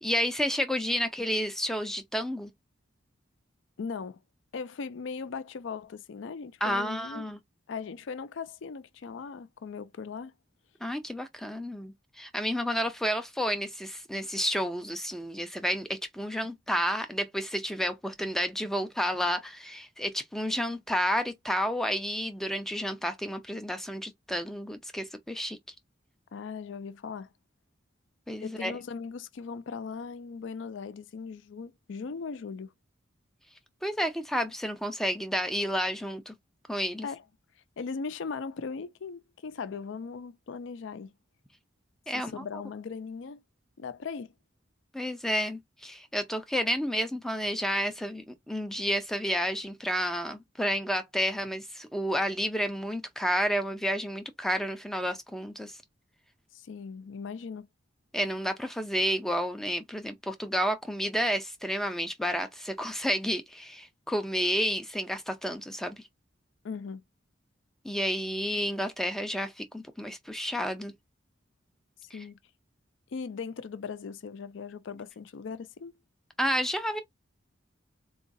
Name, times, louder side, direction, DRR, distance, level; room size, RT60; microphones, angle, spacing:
voice 1, 0.0-2.5 6.6-7.4 10.8-25.6 28.3-28.7 33.8-36.3 36.7-37.1 42.1-42.3 44.9-55.8 58.1-66.0 67.8-70.9 72.1-72.2 76.4-77.0, equal, ahead, 0.3 m, -30 dB
voice 2, 3.8-4.2 4.5-7.3 7.7-10.3 26.3-27.3 28.4-32.7 37.0-37.2 37.8-41.1 42.1-43.4 43.8-44.3 56.5-57.7 66.6-67.0 72.1-72.4 73.1-75.9, left 5 dB, 75° left, 0.4 m, -38 dB
3.8 x 2.3 x 2.6 m
head